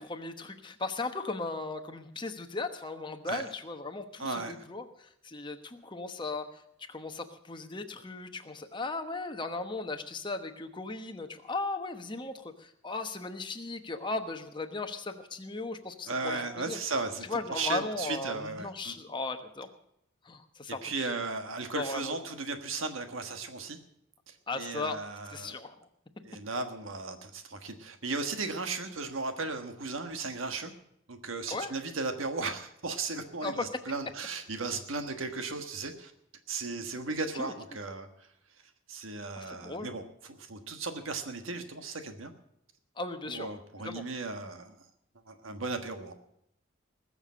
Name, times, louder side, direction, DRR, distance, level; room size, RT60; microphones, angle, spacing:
voice 1, 0.0-6.6 6.9-16.8 17.2-19.7 20.2-21.1 21.7-22.1 24.5-25.0 25.3-25.7 31.5-31.7 33.4-33.6 37.3-37.5 39.4-39.9 43.0-43.5 43.8-44.1, left 3 dB, 25° left, 6 dB, 1.1 m, -37 dB
voice 2, 4.2-4.6 16.1-18.9 20.8-23.8 24.3-25.6 26.2-30.7 31.1-36.1 36.5-38.1 38.9-42.3 43.3-44.7 45.3-46.1, right 3 dB, 80° right, 7 dB, 1.5 m, -36 dB
20.0 x 7.0 x 7.6 m, 0.76 s
head